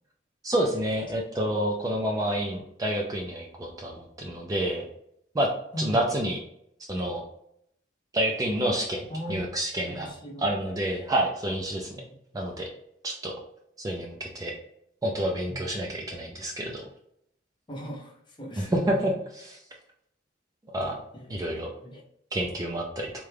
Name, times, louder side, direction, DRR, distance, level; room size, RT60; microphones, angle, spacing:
voice 1, 0.4-4.8 5.3-5.5 5.8-6.4 6.9-7.2 8.1-10.1 10.4-12.0 12.3-12.7 13.0-13.3 13.8-14.5 15.0-16.8 18.6-19.6 20.7-21.0 21.3-21.7 22.3-23.1, right 1 dB, 20° right, -1 dB, 0.3 m, -28 dB
voice 2, 5.7-6.1 9.1-9.4 9.9-10.5 11.9-12.2 15.5-15.7 17.7-18.8 21.1-22.0, equal, 25° left, -1 dB, 0.7 m, -39 dB
3.6 x 2.2 x 3.3 m, 0.74 s
head